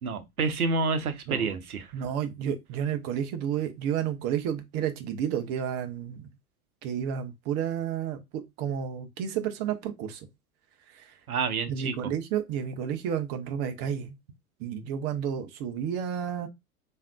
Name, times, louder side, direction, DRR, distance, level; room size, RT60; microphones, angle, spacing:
voice 1, 0.0-1.9 11.3-11.9, right 4 dB, 85° right, 0.6 m, -28 dB
voice 2, 1.3-1.6 1.9-6.3 6.8-10.2 10.9-11.1 11.7-14.1 14.6-16.5, right 8 dB, 25° right, 0.4 m, -31 dB
3.4 x 2.5 x 2.2 m
figure-of-eight pair, 90°, 43 cm